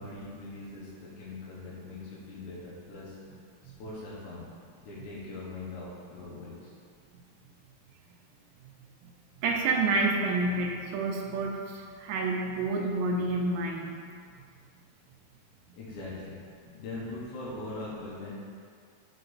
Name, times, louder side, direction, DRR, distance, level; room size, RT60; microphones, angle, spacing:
voice 1, 0.0-3.2 3.6-4.5 4.8-6.7 15.7-16.4 16.6-18.3, left 2 dB, 85° left, -6 dB, 1.7 m, -41 dB
voice 2, 9.4-13.9, right 3 dB, 85° right, -1 dB, 2.7 m, -28 dB
5.7 x 4.8 x 3.9 m, 2.2 s
omnidirectional pair, 4.8 m